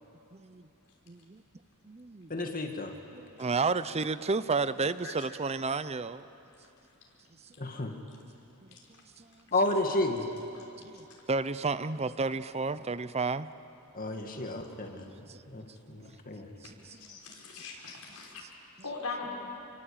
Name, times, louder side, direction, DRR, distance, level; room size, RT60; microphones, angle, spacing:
voice 1, 0.3-0.6 1.1-1.4 1.8-2.3 3.1-6.3 8.6-8.8 9.2-9.3 10.8-13.5 15.3-15.6 16.0-16.1 16.6-17.1 18.4-18.5, right 4 dB, 30° right, 14 dB, 0.7 m, -32 dB
voice 2, 2.3-2.9 7.6-7.9 9.5-10.2 13.9-16.5, left 2 dB, 40° left, 4 dB, 2.2 m, -32 dB
voice 3, 17.0-18.4 18.8-19.3, left 4 dB, 80° left, -2 dB, 5.7 m, -40 dB
28.0 x 23.5 x 8.9 m, 2.8 s
head